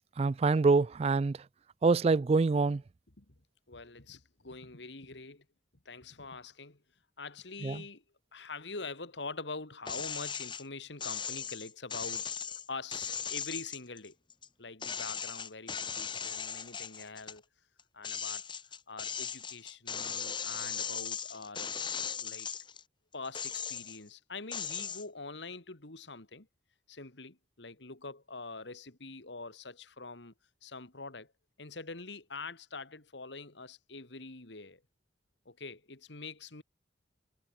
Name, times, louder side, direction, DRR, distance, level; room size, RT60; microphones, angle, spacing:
voice 1, 0.2-1.4 1.8-2.8 7.6-7.8, right 4 dB, 35° right, 0.3 m, -25 dB
voice 2, 3.7-5.4 5.9-6.8 7.2-8.0 8.3-12.3 12.7-14.2 14.6-17.4 17.9-18.4 18.9-21.7 22.2-22.5 23.1-26.5 26.9-30.3 30.6-31.3 31.6-34.8 35.5-36.6, left 3 dB, 75° left, 2.4 m, -44 dB
sound 1, 9.9-10.6 11.0-14.5 14.8-17.4 17.8-22.8 23.2-24.1 24.5-25.0, left 7 dB, 25° left, 2.0 m, -38 dB
head